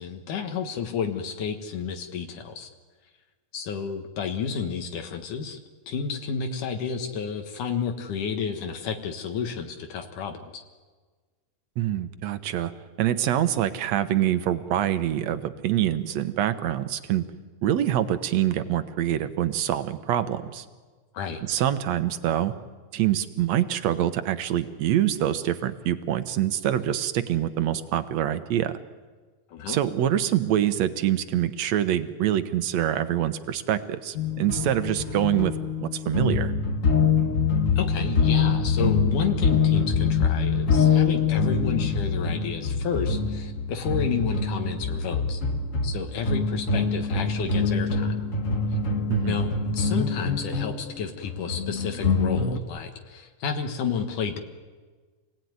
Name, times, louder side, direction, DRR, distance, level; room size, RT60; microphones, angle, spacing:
voice 1, 0.0-2.7 3.5-5.6 5.9-10.6 21.1-21.4 29.5-29.8 37.8-45.4 45.8-48.2 49.3-54.4, left 6 dB, 80° left, 4 dB, 3.0 m, -31 dB
voice 2, 11.8-12.7 13.0-17.2 17.6-20.7 21.4-22.5 22.9-28.8 29.7-35.5 35.8-36.5 49.1-49.4, right 11 dB, 65° right, 11 dB, 2.1 m, -25 dB
sound 1, 34.2-52.6, left 5 dB, 50° left, 1.0 m, -24 dB
28.0 x 19.0 x 9.6 m, 1.4 s
omnidirectional pair, 3.6 m